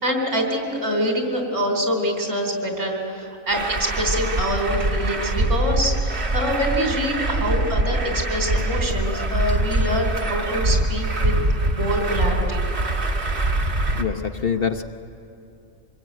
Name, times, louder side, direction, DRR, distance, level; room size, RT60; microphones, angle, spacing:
voice 1, 0.0-11.3 11.7-12.6, equal, 70° right, 2 dB, 4.3 m, -25 dB
Truck, 3.5-14.0, right 2 dB, 55° right, 1.8 m, -23 dB
voice 2, 13.9-14.8, left 7 dB, 50° left, 7 dB, 0.9 m, -25 dB
25.5 x 21.0 x 9.2 m, 2.6 s
omnidirectional pair, 1.4 m